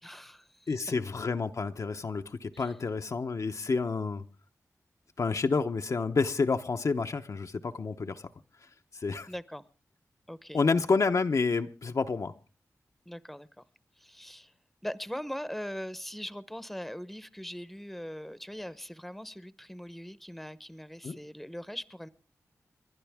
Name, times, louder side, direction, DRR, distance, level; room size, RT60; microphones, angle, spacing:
voice 1, 0.0-0.7 2.5-2.7 9.3-9.6 10.3-10.6 13.1-13.5 14.0-14.5 14.8-22.1, equal, ahead, 15 dB, 0.9 m, -41 dB
voice 2, 0.7-4.2 5.2-8.3 8.9-9.3 10.5-12.3 21.0-21.2, left 4 dB, 60° left, 6 dB, 0.8 m, -29 dB
30.0 x 11.0 x 3.5 m, 0.36 s
cardioid pair, 55°, 6 cm